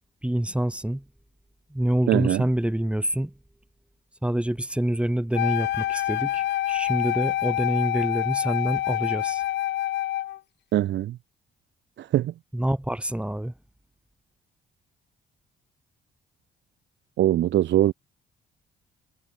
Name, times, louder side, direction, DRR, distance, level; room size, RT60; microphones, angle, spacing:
voice 1, 0.2-1.0 1.7-3.3 4.2-9.4 12.5-13.5, right 1 dB, 5° right, 3.3 m, -26 dB
voice 2, 2.1-2.4 10.7-11.2 12.0-12.3 17.2-17.9, right 13 dB, 65° right, 0.6 m, -22 dB
Wind instrument woodwind instrument, 5.3-10.4, left 14 dB, 60° left, 0.4 m, -26 dB
cardioid pair, 90°, 20 cm